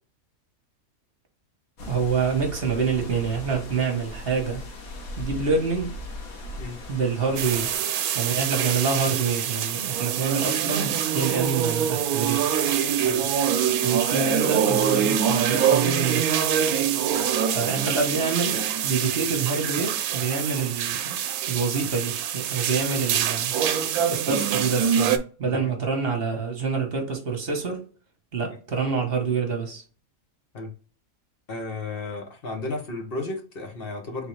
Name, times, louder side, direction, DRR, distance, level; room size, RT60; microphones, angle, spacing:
sound 1, 1.8-7.8, left 2 dB, 75° left, 1.6 m, -38 dB
voice 1, 1.9-4.6 5.2-5.9 6.9-7.8 8.1-12.5 13.8-16.3 17.5-21.2 21.5-23.5 24.1-27.8 28.3-29.8, right 5 dB, 45° right, 1.2 m, -26 dB
sound 2, 7.4-25.2, right 9 dB, 90° right, 1.1 m, -25 dB
voice 2, 31.5-34.3, left 2 dB, 45° left, 1.2 m, -33 dB
4.1 x 3.6 x 3.2 m
omnidirectional pair, 1.5 m